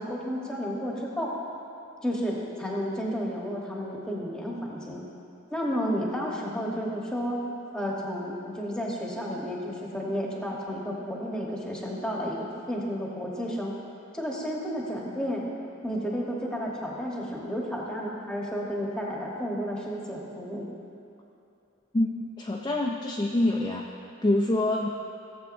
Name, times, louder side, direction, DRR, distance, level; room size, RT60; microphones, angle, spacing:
voice 1, 0.0-1.3 2.0-5.0 5.5-7.4 7.7-13.7 14.1-15.4 15.8-20.7, equal, 5° left, -3 dB, 1.1 m, -32 dB
voice 2, 21.9-23.9 24.2-24.9, left 1 dB, 20° left, -1 dB, 0.4 m, -26 dB
16.0 x 7.6 x 2.6 m, 2.7 s
head